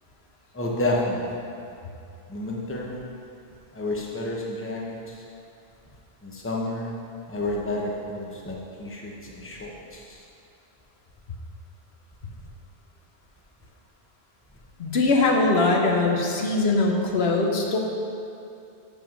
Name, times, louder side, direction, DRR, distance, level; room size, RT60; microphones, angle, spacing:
voice 1, 0.5-1.4 2.3-3.0 3.7-5.1 6.2-6.9 7.3-10.0, left 1 dB, 15° left, -3 dB, 0.9 m, -30 dB
voice 2, 14.8-17.8, left 3 dB, 75° left, 1 dB, 1.1 m, -21 dB
7.0 x 5.7 x 6.0 m, 2.6 s
omnidirectional pair, 1.1 m